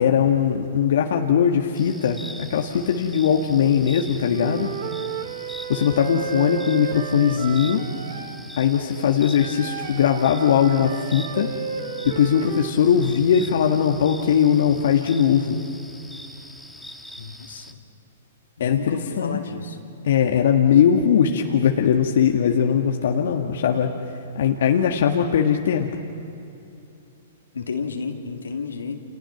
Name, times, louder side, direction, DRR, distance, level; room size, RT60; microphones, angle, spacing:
voice 1, 0.0-2.2 2.5-4.7 5.7-7.8 8.6-11.5 12.0-15.6 18.6-19.4 20.0-23.9 24.4-25.9, left 8 dB, 65° left, 2 dB, 1.7 m, -20 dB
sound 1, 1.8-17.7, equal, ahead, 1.6 m, -42 dB
Wind instrument woodwind instrument, 4.3-8.4 9.4-12.7, right 8 dB, 55° right, 1.8 m, -33 dB
voice 2, 17.2-17.8 18.6-19.8 27.5-29.0, left 5 dB, 80° left, 4 dB, 2.4 m, -32 dB
30.0 x 29.5 x 5.9 m, 2.7 s
hypercardioid pair, 120°, 0 cm